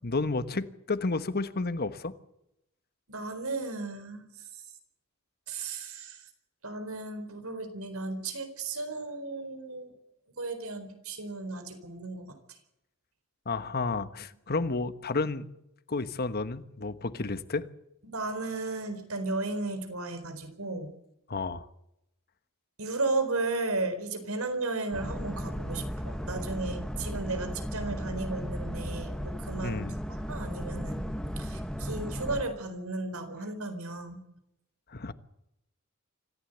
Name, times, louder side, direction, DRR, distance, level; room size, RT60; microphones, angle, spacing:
voice 1, 0.0-2.1 13.4-15.5 15.9-17.7 21.3-21.7 29.6-30.0 34.9-35.1, left 3 dB, 45° left, 1.3 m, -31 dB
voice 2, 3.1-4.6 5.5-6.3 6.6-9.9 10.4-12.4 18.0-20.9 22.8-31.1 31.4-34.2, right 3 dB, 85° right, 4.3 m, -34 dB
Boat Water vehicle, 24.9-32.4, equal, 5° left, 1.6 m, -35 dB
26.0 x 15.5 x 8.0 m
head